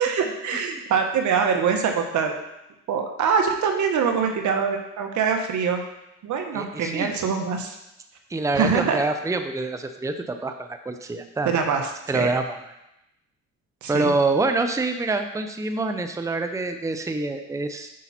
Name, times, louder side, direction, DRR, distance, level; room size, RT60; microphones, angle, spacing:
voice 1, 0.0-2.3 2.9-5.8 6.2-7.8 8.5-9.0 11.4-11.8 12.1-12.3 13.8-14.1, right 6 dB, 75° right, 4 dB, 1.3 m, -24 dB
voice 2, 6.5-7.1 8.3-11.5 12.1-12.6 13.9-17.9, right 3 dB, 10° right, 7 dB, 0.6 m, -26 dB
9.2 x 5.7 x 4.3 m, 0.88 s
cardioid pair, 90°, 30 cm